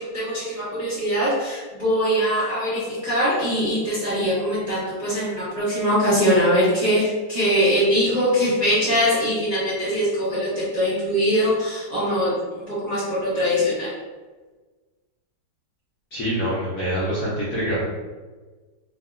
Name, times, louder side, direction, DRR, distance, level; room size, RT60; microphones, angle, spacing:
voice 1, 0.0-12.3 12.6-13.9, equal, 30° right, -12 dB, 0.8 m, -22 dB
voice 2, 16.1-17.8, equal, 60° left, -9 dB, 0.9 m, -25 dB
2.8 x 2.5 x 2.4 m, 1.3 s
omnidirectional pair, 2.0 m